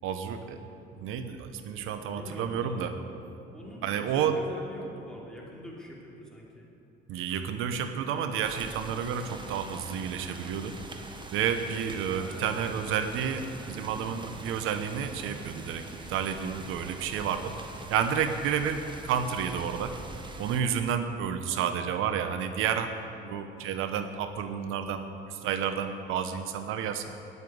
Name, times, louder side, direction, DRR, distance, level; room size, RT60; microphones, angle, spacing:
voice 1, 0.0-0.6 1.0-2.9 3.8-4.4 7.1-10.8 11.3-17.5 17.9-19.9 20.4-22.9 23.2-27.1, right 8 dB, 75° right, 8 dB, 1.1 m, -30 dB
voice 2, 2.1-2.8 3.5-6.7 12.1-12.4, left 1 dB, 5° left, -4 dB, 3.0 m, -45 dB
sound 1, 8.4-20.6, right 2 dB, 20° right, 1.3 m, -44 dB
9.3 x 8.2 x 9.4 m, 2.7 s
cardioid pair, 95°, 21 cm